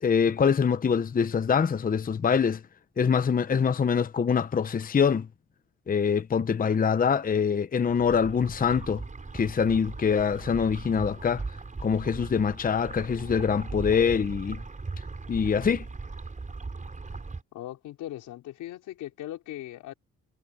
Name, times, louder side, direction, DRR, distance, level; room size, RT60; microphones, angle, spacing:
voice 1, 0.0-2.6 3.0-5.3 5.9-9.0 9.3-11.4 11.8-14.6 15.3-15.8, left 6 dB, 30° left, 0.8 m, -24 dB
sound 1, 7.9-17.4, right 3 dB, 25° right, 5.1 m, -39 dB
voice 2, 17.5-19.9, left 14 dB, 90° left, 4.7 m, -39 dB
cardioid pair, 90°, 30 cm